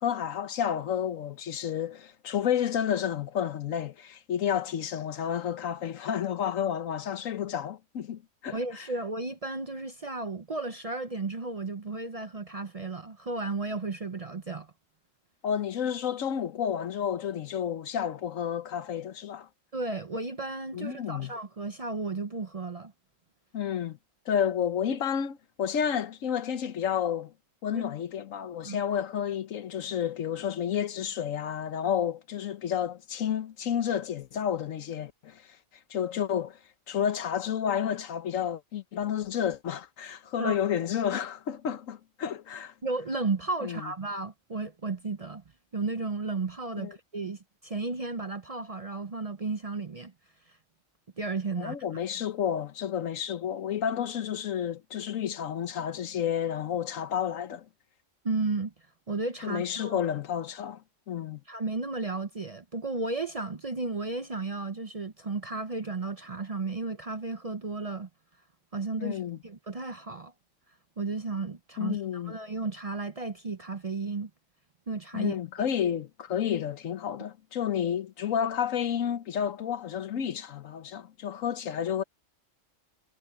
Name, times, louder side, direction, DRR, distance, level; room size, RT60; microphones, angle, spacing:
voice 1, 0.0-8.8 15.4-19.5 20.7-21.3 23.5-24.0 24.3-27.3 27.6-35.5 35.9-36.6 36.9-42.7 43.6-43.9 46.8-46.9 51.6-57.7 59.4-61.4 69.0-69.4 71.8-72.3 75.1-82.0, left 9 dB, 85° left, 1.3 m, -31 dB
voice 2, 8.5-14.7 19.7-22.9 28.6-28.8 40.4-40.6 42.8-45.4 45.7-50.1 51.2-51.8 58.2-58.7 59.1-60.0 61.5-68.1 68.7-70.3 71.0-74.3 74.9-75.4, right 3 dB, 35° right, 0.6 m, -33 dB
omnidirectional pair, 1.3 m